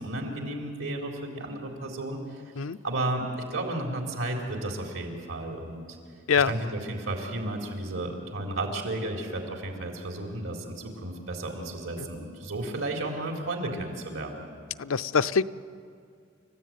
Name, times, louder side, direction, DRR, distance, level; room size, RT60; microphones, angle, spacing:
voice 1, 0.0-2.4 2.8-5.8 6.5-14.4, right 2 dB, 75° right, 1 dB, 4.2 m, -33 dB
voice 2, 14.8-15.4, left 6 dB, 75° left, 13 dB, 0.6 m, -24 dB
30.0 x 15.5 x 9.4 m, 2.2 s
head